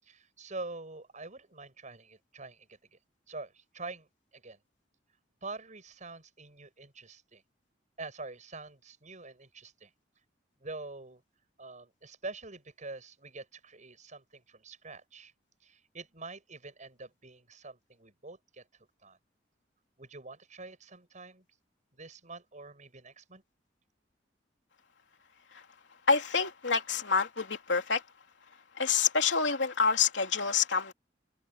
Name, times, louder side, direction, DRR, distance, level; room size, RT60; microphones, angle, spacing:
voice 1, 0.0-3.0 3.3-4.1 4.3-4.6 5.4-7.4 8.0-9.9 10.6-11.2 11.6-15.3 15.6-18.7 19.0-19.2 20.0-21.4 21.9-23.4, right 3 dB, 45° right, 7.5 m, -45 dB
voice 2, 26.1-28.0 28.8-30.9, left 5 dB, 80° left, 3.2 m, -27 dB
head